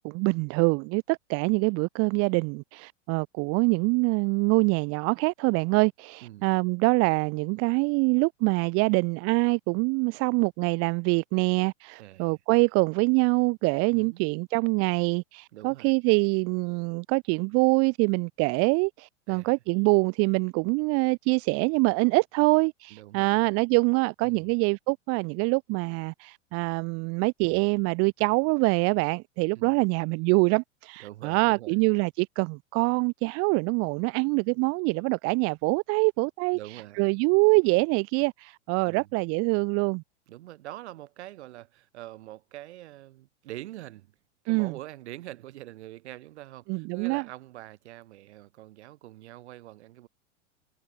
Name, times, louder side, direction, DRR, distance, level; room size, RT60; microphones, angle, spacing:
voice 1, 0.0-36.6 37.0-40.0 44.5-44.7 46.7-47.2, right 30 dB, 40° right, 0.9 m, -25 dB
voice 2, 6.2-6.6 12.0-12.4 13.9-14.3 15.5-15.9 19.3-19.5 22.9-23.4 24.2-24.5 29.5-29.8 31.0-31.8 36.5-37.2 38.8-39.1 40.3-44.2 44.4-50.1, right 15 dB, 60° right, 6.6 m, -44 dB
hypercardioid pair, 100°, 37 cm